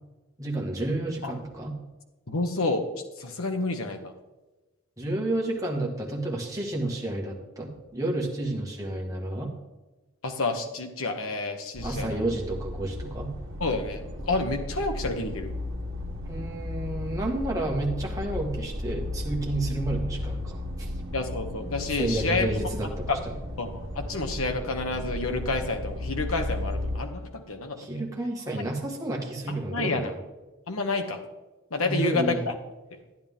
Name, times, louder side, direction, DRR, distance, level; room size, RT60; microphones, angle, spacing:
voice 1, 0.4-1.7 5.0-9.5 11.8-13.3 16.3-20.9 22.0-23.2 27.8-30.1 31.8-32.4, right 2 dB, 15° right, -1 dB, 1.7 m, -30 dB
voice 2, 2.3-2.8 3.2-4.1 10.2-12.2 13.6-15.5 21.1-22.6 23.1-23.2 23.6-28.0 29.5-30.1 30.7-31.2 31.7-32.5, left 3 dB, 80° left, 5 dB, 1.4 m, -29 dB
sound 1, 11.7-27.0, left 1 dB, 65° right, 1.4 m, -34 dB
11.0 x 10.5 x 3.7 m, 1.1 s
head